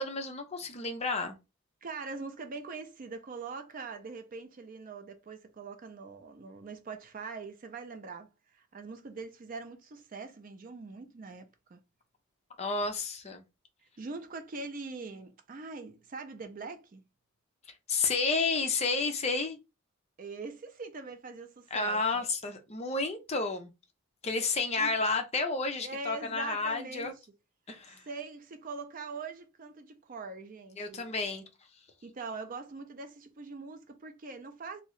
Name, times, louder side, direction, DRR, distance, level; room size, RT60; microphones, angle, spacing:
voice 1, 0.0-1.4 12.6-13.4 17.9-19.6 21.7-23.7 24.2-27.1 27.7-28.0 30.8-31.4, left 3 dB, 30° left, 0.5 m, -31 dB
voice 2, 1.8-11.8 14.0-17.0 20.2-22.3 24.8-24.9 25.8-27.2 27.9-31.4 32.0-34.8, right 4 dB, 40° right, 0.4 m, -43 dB
2.8 x 2.7 x 3.1 m
head